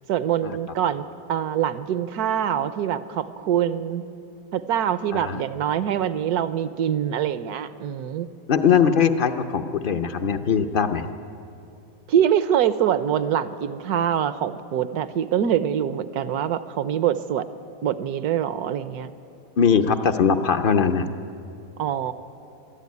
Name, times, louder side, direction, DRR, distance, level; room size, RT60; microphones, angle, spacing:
voice 1, 0.1-4.0 4.5-8.3 12.1-17.5 17.8-19.1 21.8-22.1, right 9 dB, 70° right, 13 dB, 1.2 m, -24 dB
voice 2, 5.1-5.4 8.5-11.1 19.6-21.1, left 6 dB, 55° left, 8 dB, 0.6 m, -21 dB
23.0 x 14.0 x 9.4 m, 2.7 s
omnidirectional pair, 1.8 m